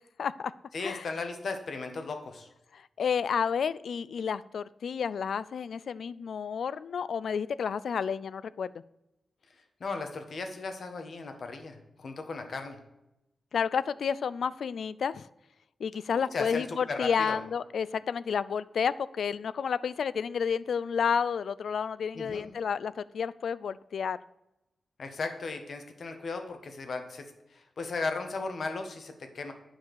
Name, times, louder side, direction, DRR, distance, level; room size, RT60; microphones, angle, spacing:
voice 1, 0.2-0.5 0.8-1.0 2.7-8.7 13.5-15.3 15.8-24.2, left 6 dB, 80° left, 18 dB, 0.3 m, -31 dB
voice 2, 0.7-2.5 9.8-12.8 16.1-17.4 22.1-22.5 25.0-29.5, left 3 dB, 60° left, 6 dB, 1.3 m, -36 dB
9.3 x 4.9 x 6.4 m, 0.90 s
wide cardioid pair, 145°, 0 cm